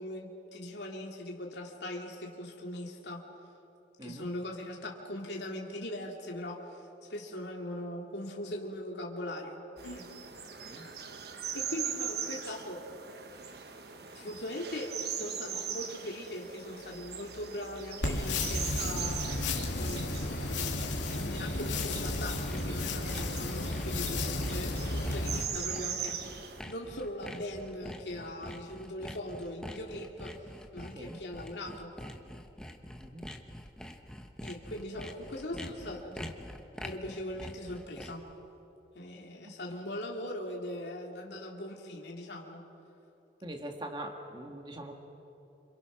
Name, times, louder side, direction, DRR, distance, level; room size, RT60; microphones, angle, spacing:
voice 1, 0.0-3.2 4.0-10.1 11.5-12.8 13.5-13.6 14.1-19.5 19.7-20.6 21.2-31.9 34.4-36.3 36.8-38.2 38.9-42.6, left 1 dB, 70° left, -1 dB, 2.6 m, -40 dB
voice 2, 4.0-4.3 10.6-10.9 30.9-31.2 33.0-33.3 39.4-39.6 43.4-44.9, right 1 dB, 25° right, 3 dB, 1.8 m, -42 dB
sound 1, 9.8-26.6, right 7 dB, 60° right, 1.4 m, -41 dB
sound 2, 18.0-25.4, left 2 dB, 85° left, 2.6 m, -33 dB
Sawing, 21.0-38.3, equal, 5° left, 1.1 m, -46 dB
27.5 x 26.5 x 6.1 m, 3.0 s
head